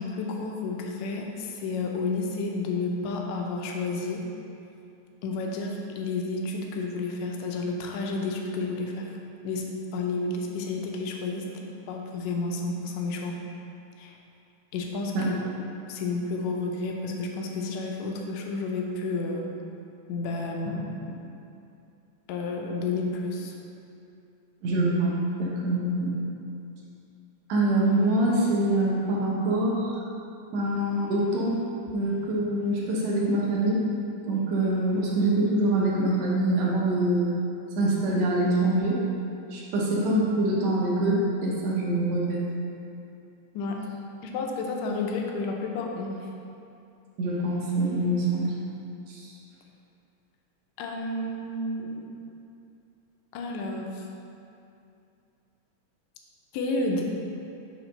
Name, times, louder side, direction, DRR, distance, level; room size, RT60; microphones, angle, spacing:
voice 1, 0.0-4.2 5.2-9.1 9.4-13.4 14.0-14.2 14.7-15.5 15.9-19.5 20.1-21.2 22.3-23.5 43.5-43.9 44.2-46.2 50.8-52.1 53.3-54.1 56.5-57.0, left 3 dB, 80° left, 1 dB, 1.7 m, -31 dB
voice 2, 24.6-25.1 25.4-26.1 27.5-29.9 30.5-31.5 31.9-33.8 34.3-37.4 37.8-39.0 39.5-42.4 47.2-48.5 49.1-49.3, right 1 dB, 65° right, -5 dB, 1.8 m, -24 dB
7.3 x 3.3 x 5.3 m, 2.6 s
omnidirectional pair, 3.8 m